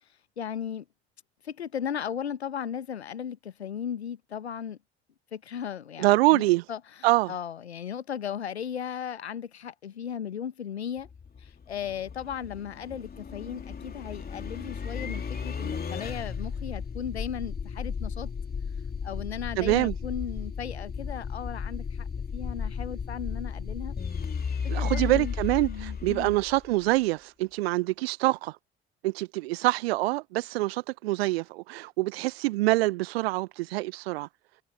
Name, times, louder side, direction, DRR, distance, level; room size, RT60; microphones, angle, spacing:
voice 1, 0.4-0.9 1.4-4.8 5.3-11.1 11.4-18.3 19.0-22.1 22.3-24.0 24.6-25.3 25.7-26.3, left 8 dB, 80° left, 1.2 m, -36 dB
voice 2, 6.0-6.6 7.0-7.3 19.6-19.9 24.7-28.6 29.0-34.3, right 19 dB, 65° right, 1.1 m, -25 dB
sound 1, 11.0-27.0, left 6 dB, 30° left, 3.5 m, -34 dB
figure-of-eight pair, 55°, 32 cm